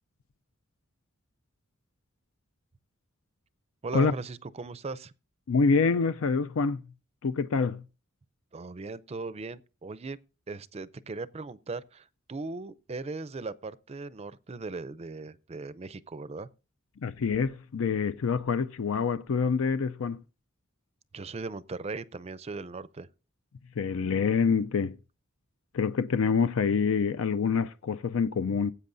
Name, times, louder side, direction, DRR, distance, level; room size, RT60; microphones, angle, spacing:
voice 1, 3.8-5.1 8.5-10.2 10.5-16.5 21.1-23.1, right 3 dB, 30° right, 0.5 m, -38 dB
voice 2, 5.5-6.8 7.2-7.8 17.0-20.2 23.8-24.9 25.7-28.7, left 5 dB, 70° left, 0.5 m, -26 dB
18.5 x 8.4 x 2.6 m
head